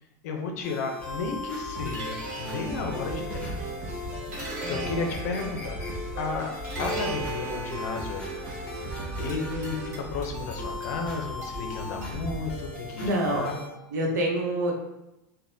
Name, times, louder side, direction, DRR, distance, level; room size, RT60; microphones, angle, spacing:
voice 1, 0.2-3.6 4.7-5.8 6.2-8.5 9.2-13.7, left 4 dB, 65° left, 4 dB, 0.5 m, -33 dB
sound 1, 0.6-13.7, left 4 dB, 15° left, 0.6 m, -39 dB
sound 2, 1.0-13.1, right 2 dB, 65° right, 1.2 m, -38 dB
sound 3, 1.8-10.0, right 3 dB, 45° right, 0.6 m, -39 dB
voice 2, 13.0-13.5 13.9-14.7, right 1 dB, 90° right, 0 dB, 0.8 m, -26 dB
3.4 x 2.1 x 2.7 m, 0.93 s
supercardioid pair, 165°, 9 cm